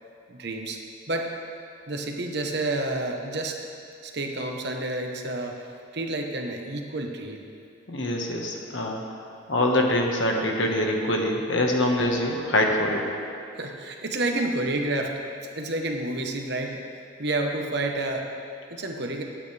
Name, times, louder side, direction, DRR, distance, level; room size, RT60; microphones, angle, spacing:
voice 1, 0.3-0.8 1.1-1.3 1.9-3.6 4.0-7.4 13.6-15.1 15.5-16.8 17.2-18.2 18.7-19.2, right 2 dB, 55° right, 2 dB, 1.1 m, -29 dB
voice 2, 7.9-9.0 9.5-13.1, left 1 dB, 60° left, 1 dB, 1.5 m, -24 dB
22.5 x 9.0 x 3.4 m, 2.5 s
head